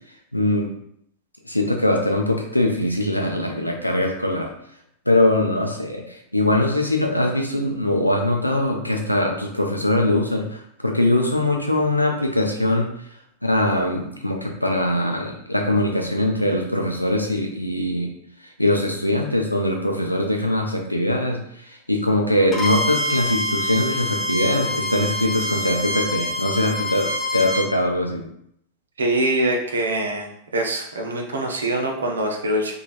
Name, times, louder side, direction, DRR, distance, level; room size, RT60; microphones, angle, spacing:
voice 1, 0.3-0.7 1.4-4.5 5.1-12.9 13.4-18.1 18.6-28.3, left 1 dB, 90° left, 2 dB, 0.5 m, -22 dB
Bowed string instrument, 22.5-27.7, left 1 dB, 20° left, 0.6 m, -26 dB
voice 2, 29.0-30.3 30.5-32.7, right 1 dB, 70° right, 1 dB, 0.5 m, -23 dB
3.1 x 2.3 x 2.6 m, 0.72 s
figure-of-eight pair, 90°, 0 cm